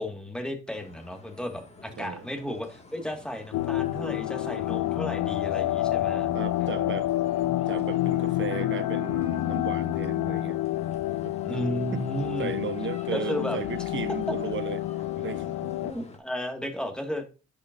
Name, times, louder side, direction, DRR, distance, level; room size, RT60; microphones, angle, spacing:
voice 1, 0.0-6.3 11.4-12.5 13.1-13.6 15.8-17.3, equal, 5° left, 1.7 m, -34 dB
sound 1, 0.7-16.2, left 2 dB, 20° left, 1.8 m, -50 dB
sound 2, 3.5-15.9, left 15 dB, 85° left, 0.5 m, -28 dB
voice 2, 6.3-7.1 7.7-10.6 11.2-11.6 11.9-12.0 12.4-14.9 15.2-15.7, right 8 dB, 40° right, 0.6 m, -35 dB
11.5 x 5.4 x 2.5 m
cardioid pair, 90°, 30 cm